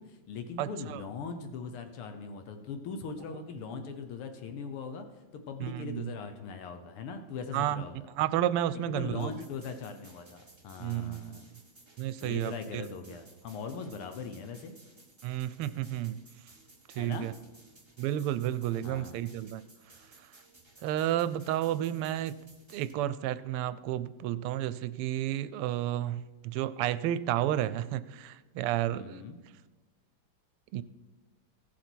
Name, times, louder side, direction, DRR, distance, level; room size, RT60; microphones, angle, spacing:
voice 1, 0.0-5.1 5.3-8.0 8.7-11.5 12.2-14.7 17.0-17.3 18.8-19.1 28.9-29.4, left 5 dB, 80° left, 7 dB, 1.9 m, -40 dB
voice 2, 0.6-1.0 3.7-3.8 5.6-6.1 7.5-7.8 8.2-9.3 10.8-11.5 12.0-12.8 15.2-16.2 16.9-17.3 18.0-19.6 20.8-22.3 22.7-29.2 30.7-30.8, right 12 dB, 85° right, 15 dB, 1.5 m, -31 dB
sound 1, 9.2-22.9, right 2 dB, 15° right, 1.4 m, -58 dB
16.0 x 7.4 x 4.6 m, 1.2 s
omnidirectional pair, 2.4 m